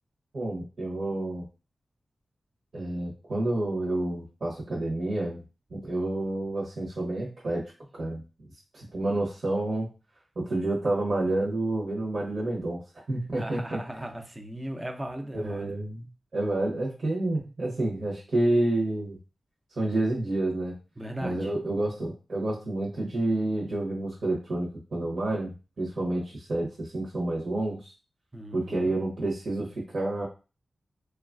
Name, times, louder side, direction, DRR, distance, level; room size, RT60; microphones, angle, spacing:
voice 1, 0.3-1.4 2.7-5.4 5.7-7.6 8.0-8.2 8.7-9.9 10.4-12.8 13.1-13.8 15.3-16.1 16.3-19.2 19.7-20.7 21.2-25.5 25.8-27.9 28.5-30.3, right 2 dB, 60° right, -5 dB, 0.8 m, -29 dB
voice 2, 13.3-15.8 21.0-21.5 28.3-28.9, right 1 dB, 20° right, 3 dB, 0.5 m, -38 dB
3.0 x 2.3 x 2.4 m, 0.32 s
wide cardioid pair, 100°, 0 cm